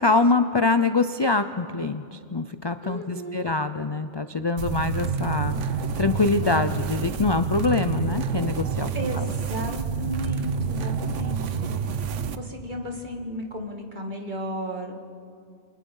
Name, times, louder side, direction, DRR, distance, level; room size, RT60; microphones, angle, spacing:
voice 1, 0.0-5.6 6.0-8.9 9.2-9.3, left 3 dB, 30° left, 10 dB, 0.5 m, -24 dB
voice 2, 2.8-3.5 8.9-11.8 12.3-15.0, equal, 40° right, 2 dB, 2.3 m, -34 dB
sound 1, 4.6-12.4, right 6 dB, 85° right, 1.2 m, -28 dB
29.0 x 23.5 x 5.5 m, 2.4 s
omnidirectional pair, 1.2 m